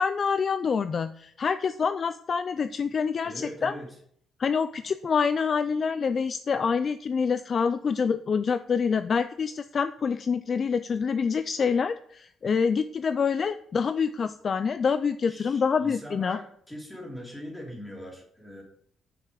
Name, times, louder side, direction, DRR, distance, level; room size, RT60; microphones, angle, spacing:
voice 1, 0.0-3.7 4.4-16.4, left 6 dB, 40° left, 11 dB, 0.3 m, -26 dB
voice 2, 3.2-4.0 15.3-18.6, equal, 10° left, -2 dB, 2.9 m, -41 dB
9.3 x 5.8 x 5.1 m, 0.64 s
cardioid pair, 140°, 0 cm